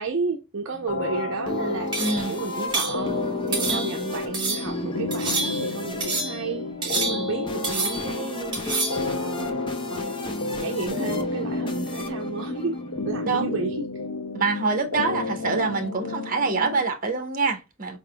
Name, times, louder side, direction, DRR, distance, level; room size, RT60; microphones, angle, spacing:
voice 1, 0.0-9.6 9.9-12.8 13.0-13.8, right 4 dB, 60° right, 0.6 m, -32 dB
sound 1, 0.7-13.4, left 2 dB, 20° left, 0.6 m, -35 dB
sound 2, 0.9-16.9, left 3 dB, 80° left, 0.6 m, -32 dB
sound 3, 1.9-2.3 2.7-3.0 3.5-4.0 4.3-4.7 5.1-5.7 6.0-6.4 6.8-7.4 7.6-8.2 8.5-9.1, right 3 dB, 20° right, 1.4 m, -28 dB
voice 2, 2.0-2.4 3.6-4.0 13.2-13.6 14.3-18.0, right 4 dB, 40° right, 1.0 m, -25 dB
4.8 x 3.4 x 2.2 m
head